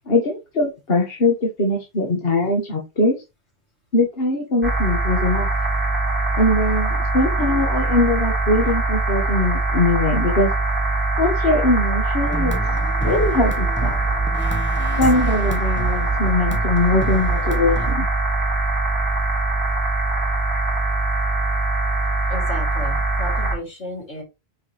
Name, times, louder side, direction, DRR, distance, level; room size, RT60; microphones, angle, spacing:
voice 1, 0.1-3.2 3.9-5.5 6.3-10.5 11.2-12.5 13.0-14.0 15.0-18.1, left 2 dB, 60° left, 1 dB, 1.7 m, -21 dB
sound 1, 4.6-23.6, right 2 dB, 10° right, 4.2 m, -22 dB
sound 2, 12.3-17.9, right 4 dB, 10° left, 1.2 m, -30 dB
voice 2, 22.3-24.2, left 1 dB, 80° left, -2 dB, 3.8 m, -33 dB
8.9 x 4.8 x 3.3 m, 0.24 s
omnidirectional pair, 1.1 m